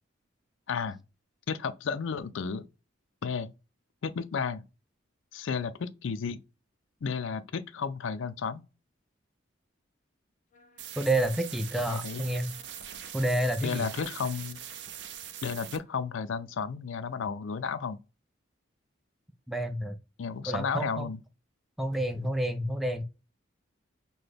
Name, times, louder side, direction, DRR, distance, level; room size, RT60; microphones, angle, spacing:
voice 1, 0.7-1.0 1.5-2.7 3.2-3.5 4.0-4.7 5.3-6.4 7.0-8.6 11.9-12.4 13.6-14.6 15.4-18.0 20.2-21.2, left 6 dB, 75° left, 0.4 m, -33 dB
sound 1, 10.5-16.1, left 2 dB, 40° left, 0.7 m, -61 dB
sound 2, 10.8-15.8, right 10 dB, 60° right, 0.5 m, -42 dB
voice 2, 11.0-12.5 13.1-13.9 19.5-20.0 20.5-21.1 21.8-23.0, right 1 dB, ahead, 0.3 m, -29 dB
5.9 x 2.2 x 3.3 m
head